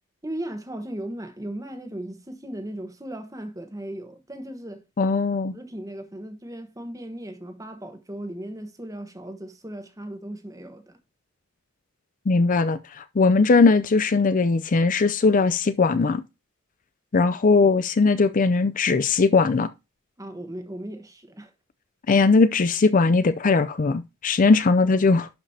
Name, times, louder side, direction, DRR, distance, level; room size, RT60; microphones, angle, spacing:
voice 1, 0.2-4.8 5.5-11.0 20.2-21.5, right 1 dB, 15° right, 1.1 m, -37 dB
voice 2, 5.0-5.5 12.3-16.2 17.1-19.7 22.1-25.3, left 4 dB, 40° left, 0.4 m, -19 dB
11.0 x 5.1 x 2.7 m
head